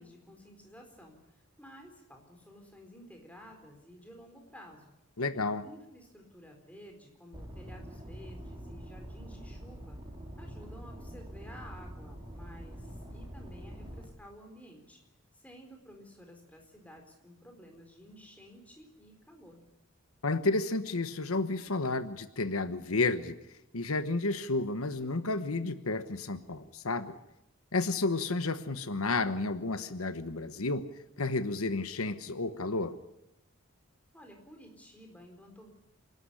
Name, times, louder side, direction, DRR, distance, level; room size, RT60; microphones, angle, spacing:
voice 1, 0.0-4.9 5.6-10.0 10.4-15.0 15.3-19.6 34.1-35.7, equal, 5° left, 3 dB, 4.3 m, -53 dB
voice 2, 5.2-5.6 20.2-23.4 23.7-27.1 27.7-30.8 31.2-32.9, left 3 dB, 85° left, 11 dB, 1.2 m, -31 dB
sound 1, 7.3-14.0, equal, 20° right, 4.4 m, -45 dB
27.5 x 12.5 x 9.8 m, 0.87 s
head